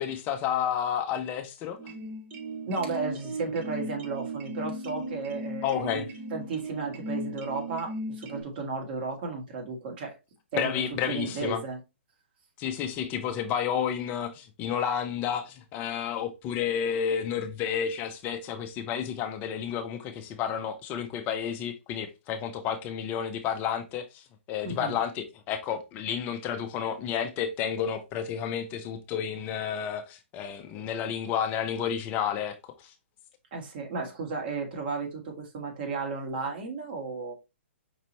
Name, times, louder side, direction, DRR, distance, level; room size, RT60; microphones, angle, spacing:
voice 1, 0.0-1.8 5.6-6.1 10.6-11.6 12.6-32.9, left 8 dB, 25° left, 0.5 m, -31 dB
sound 1, 1.8-8.4, right 1 dB, 20° right, 0.8 m, -36 dB
voice 2, 2.7-6.0 6.3-10.2 10.5-11.8 24.6-25.0 33.5-37.3, right 4 dB, 50° right, 2.0 m, -34 dB
5.3 x 3.0 x 2.8 m
hypercardioid pair, 140°, 7 cm